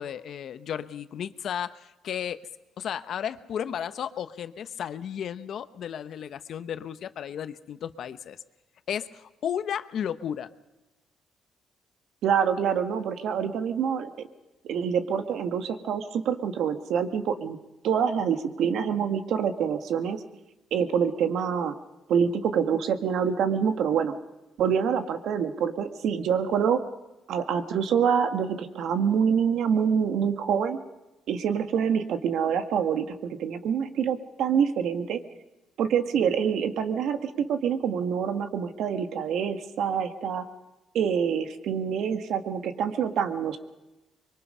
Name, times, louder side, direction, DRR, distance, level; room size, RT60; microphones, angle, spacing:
voice 1, 0.0-2.4 2.8-8.4 8.9-10.5, left 9 dB, 65° left, 12 dB, 1.0 m, -34 dB
voice 2, 12.2-14.3 14.6-17.6 17.8-20.2 20.7-21.7 22.1-24.1 24.6-26.8 27.3-30.8 31.3-35.2 35.8-40.4 40.9-43.6, right 7 dB, 75° right, 8 dB, 1.7 m, -26 dB
24.5 x 22.5 x 5.6 m, 1.1 s
cardioid pair, 90°, 0 cm